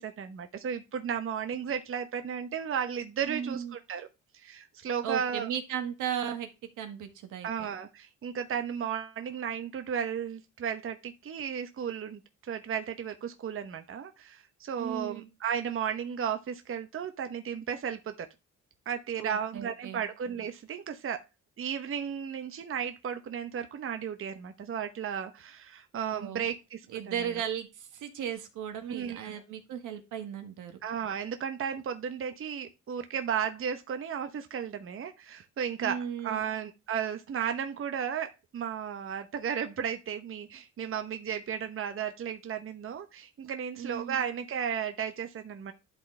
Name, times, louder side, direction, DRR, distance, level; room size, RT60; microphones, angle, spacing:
voice 1, 0.0-4.1 4.3-5.5 7.4-18.3 18.9-21.2 21.6-27.3 28.9-29.4 30.8-45.7, right 8 dB, 45° right, 7 dB, 0.9 m, -34 dB
voice 2, 3.3-3.8 5.0-6.5 6.8-7.7 14.8-15.3 19.2-20.0 26.1-26.5 26.9-30.8 35.8-36.5 43.8-44.2, right 9 dB, 85° right, 6 dB, 1.6 m, -36 dB
11.5 x 4.0 x 3.2 m, 0.25 s
cardioid pair, 90°, 30 cm